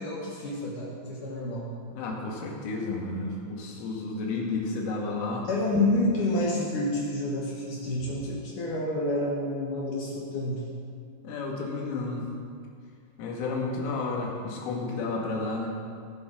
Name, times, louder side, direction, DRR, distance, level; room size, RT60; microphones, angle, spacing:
voice 1, 0.0-1.7 5.4-10.7, left 1 dB, 65° left, -3 dB, 2.1 m, -29 dB
voice 2, 2.0-5.5 11.2-12.2 13.2-15.7, left 3 dB, 80° left, -1 dB, 4.4 m, -31 dB
21.0 x 7.1 x 5.0 m, 2.3 s
omnidirectional pair, 5.7 m